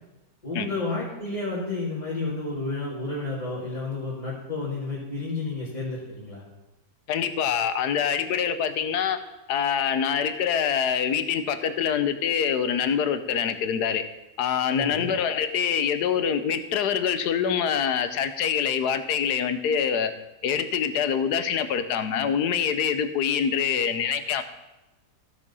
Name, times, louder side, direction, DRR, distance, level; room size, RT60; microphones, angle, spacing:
voice 1, 0.4-6.4 14.7-15.1, left 3 dB, 25° left, -9 dB, 2.2 m, -31 dB
voice 2, 7.1-9.2 9.5-14.0 14.4-20.1 20.4-24.4, left 7 dB, 75° left, 10 dB, 1.3 m, -25 dB
15.0 x 5.1 x 5.4 m, 0.99 s
omnidirectional pair, 1.8 m